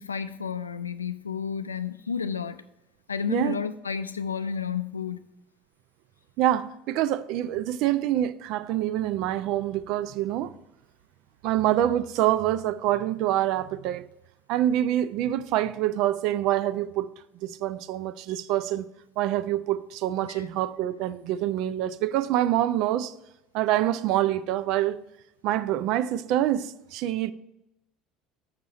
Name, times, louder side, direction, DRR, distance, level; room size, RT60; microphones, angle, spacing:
voice 1, 0.0-2.6 3.1-5.2 20.2-20.5, left 6 dB, 85° left, 0.3 m, -31 dB
voice 2, 6.4-10.5 11.4-14.1 14.5-17.1 17.4-18.9 19.2-23.1 23.5-25.0 25.4-27.3, right 12 dB, 60° right, 0.4 m, -26 dB
7.3 x 6.1 x 5.4 m
figure-of-eight pair, 65°, 0 cm